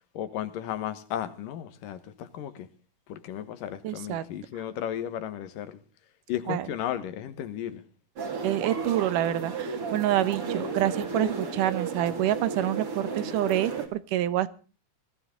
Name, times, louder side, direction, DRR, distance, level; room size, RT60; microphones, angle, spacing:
voice 1, 0.1-2.7 3.1-5.8 6.3-7.8, left 10 dB, 85° left, 3.0 m, -34 dB
voice 2, 3.8-4.3 6.5-6.7 8.4-14.5, right 13 dB, 80° right, 2.6 m, -27 dB
sound 1, 8.2-13.9, right 4 dB, 45° right, 3.5 m, -33 dB
20.5 x 15.0 x 3.8 m
omnidirectional pair, 3.7 m